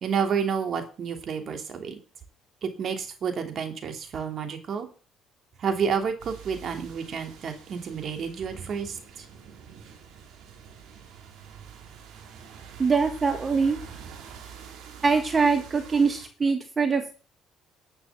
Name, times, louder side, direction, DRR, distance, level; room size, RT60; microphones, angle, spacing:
voice 1, 0.0-2.0 2.6-4.9 5.6-9.3, right 6 dB, 50° right, 5 dB, 2.9 m, -30 dB
sound 1, 6.2-16.3, right 7 dB, 75° right, 3.4 m, -46 dB
voice 2, 12.8-13.8 15.0-17.1, right 5 dB, 30° right, 7 dB, 1.4 m, -23 dB
10.5 x 6.9 x 7.5 m, 0.36 s
cardioid pair, 100°, 0 cm